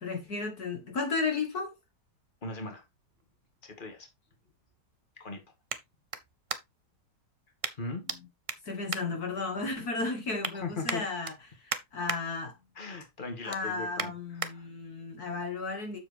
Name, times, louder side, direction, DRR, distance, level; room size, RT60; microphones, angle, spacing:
voice 1, 0.0-1.8 8.6-11.3 11.6-12.5 13.4-16.0, left 3 dB, 60° left, 1.9 m, -34 dB
voice 2, 2.4-2.8 3.6-4.1 5.2-5.4 7.7-8.0 10.6-11.0 12.8-14.7, left 3 dB, 30° left, 2.1 m, -39 dB
sound 1, 2.8-7.0 7.6-8.2 8.4-9.8 10.1-10.5 10.8-12.2 12.6-12.9 13.2-14.5 15.1-15.2, right 4 dB, 45° right, 0.4 m, -38 dB
7.4 x 7.0 x 3.4 m
omnidirectional pair, 1.9 m